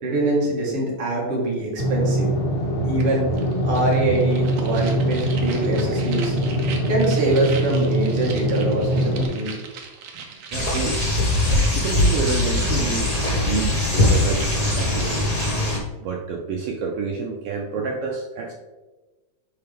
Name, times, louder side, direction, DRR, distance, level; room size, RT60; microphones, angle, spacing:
voice 1, 0.0-2.3 2.9-3.2 3.6-6.3 6.9-9.5, right 2 dB, 50° right, -3 dB, 2.6 m, -24 dB
sound 1, 1.8-9.3, right 1 dB, 80° left, 2.9 m, -23 dB
sound 2, 3.0-3.1 3.4-15.5, right 5 dB, 65° right, 1.8 m, -39 dB
sound 3, 10.5-15.8, left 2 dB, 55° left, 0.4 m, -21 dB
voice 2, 10.5-11.1 11.7-15.4 16.0-18.5, right 5 dB, 90° right, 0 dB, 1.3 m, -29 dB
10.5 x 3.8 x 3.5 m, 1.2 s
omnidirectional pair, 3.4 m